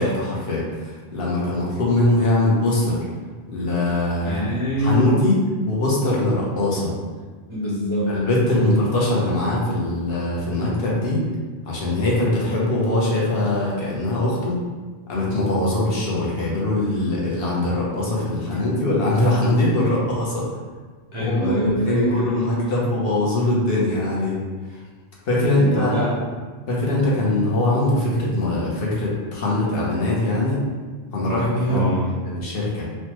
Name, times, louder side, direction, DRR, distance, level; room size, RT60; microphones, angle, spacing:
voice 1, 0.0-3.1 3.5-4.4 4.8-5.4 5.7-6.9 8.1-11.2 11.6-14.6 15.1-20.5 21.2-24.4 24.7-24.8 25.3-26.1 26.7-30.6 31.1-31.8 32.2-32.9, left 1 dB, 60° left, -5 dB, 0.9 m, -22 dB
voice 2, 4.2-5.3 7.5-8.1 8.5-8.7 19.8-20.0 21.1-22.9 25.6-26.2 31.7-32.2, equal, 45° right, -9 dB, 0.4 m, -25 dB
3.2 x 2.1 x 2.9 m, 1.4 s
omnidirectional pair, 1.2 m